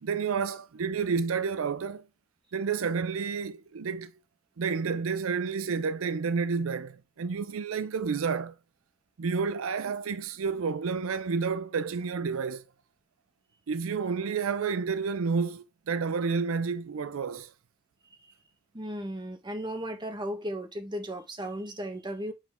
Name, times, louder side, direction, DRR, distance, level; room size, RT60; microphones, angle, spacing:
voice 1, 0.0-2.1 2.5-4.1 4.6-8.5 9.2-12.6 13.7-17.5, right 5 dB, 85° right, 0.5 m, -30 dB
voice 2, 18.7-22.3, equal, 20° right, 1.2 m, -35 dB
7.3 x 4.2 x 3.5 m
head